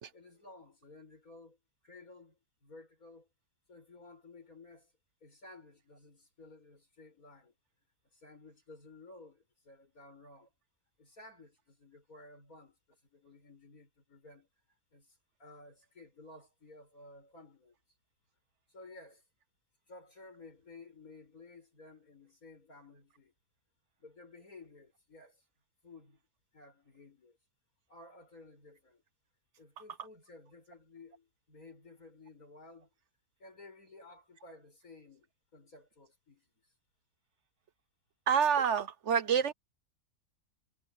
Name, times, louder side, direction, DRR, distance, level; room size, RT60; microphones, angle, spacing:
voice 1, 0.1-1.6 1.8-3.3 3.7-4.9 5.2-7.5 8.1-10.5 11.0-14.5 14.9-17.8 18.7-19.2 19.9-23.3 24.0-25.4 25.8-26.2 26.5-27.4 27.9-29.0 29.6-32.9 33.4-36.5, left 2 dB, 80° left, 7.8 m, -55 dB
voice 2, 38.3-39.5, right 7 dB, 60° right, 1.0 m, -27 dB
omnidirectional pair, 1.5 m